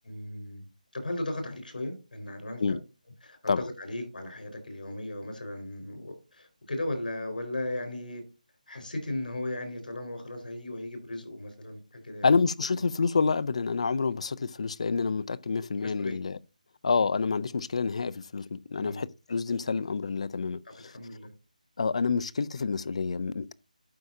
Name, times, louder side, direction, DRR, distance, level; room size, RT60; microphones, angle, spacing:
voice 1, 0.0-0.6 0.9-2.8 3.2-8.2 8.7-12.4 15.8-16.2 18.8-19.0 20.6-21.3, left 1 dB, 85° left, 4.1 m, -36 dB
voice 2, 12.2-16.4 16.8-20.9 21.8-23.5, left 4 dB, 45° left, 0.4 m, -28 dB
12.0 x 4.8 x 2.7 m
hypercardioid pair, 175°, 5 cm